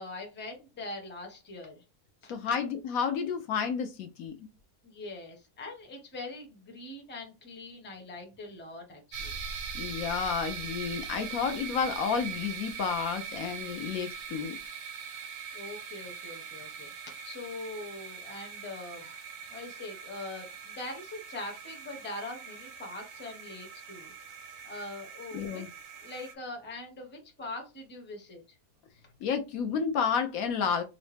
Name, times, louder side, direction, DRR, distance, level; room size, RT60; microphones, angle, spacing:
voice 1, 0.0-1.8 2.2-2.3 4.8-9.4 15.2-15.3 15.5-24.1 24.6-25.6 26.0-28.4, left 2 dB, 10° left, 0.7 m, -42 dB
voice 2, 2.3-4.3 9.7-14.6 25.3-25.7 29.2-30.8, left 6 dB, 70° left, 1.0 m, -31 dB
sound 1, 9.1-26.3, right 6 dB, 90° right, 1.2 m, -42 dB
3.8 x 2.1 x 3.2 m
omnidirectional pair, 1.6 m